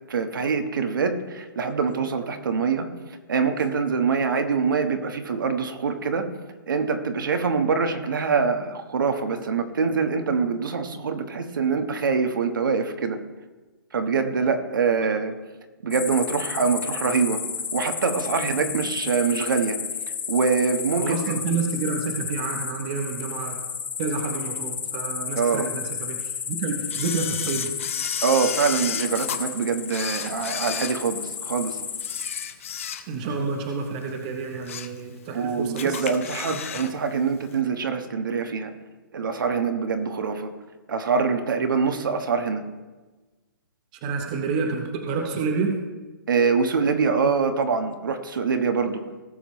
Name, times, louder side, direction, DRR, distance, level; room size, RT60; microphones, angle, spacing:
voice 1, 0.1-2.9 3.3-6.3 6.7-13.2 13.9-15.3 15.8-17.4 17.7-19.8 20.3-21.2 25.4-25.7 28.2-31.8 35.3-38.7 39.1-40.5 40.9-42.6 46.3-49.0, right 5 dB, 70° right, 6 dB, 1.4 m, -24 dB
sound 1, 15.9-32.4, left 7 dB, 80° left, 1.2 m, -32 dB
voice 2, 21.0-23.6 24.0-27.7 33.1-36.0 36.5-36.8 44.0-45.8, right 4 dB, 20° right, 3 dB, 0.7 m, -29 dB
Camera, 26.9-29.4 29.9-31.5 31.9-33.3 33.7-33.9 34.4-35.0 35.3-35.4 35.8-36.9 37.2-37.3, left 9 dB, 40° left, 0.6 m, -33 dB
18.0 x 7.3 x 3.1 m, 1.2 s
hypercardioid pair, 175°, 11 cm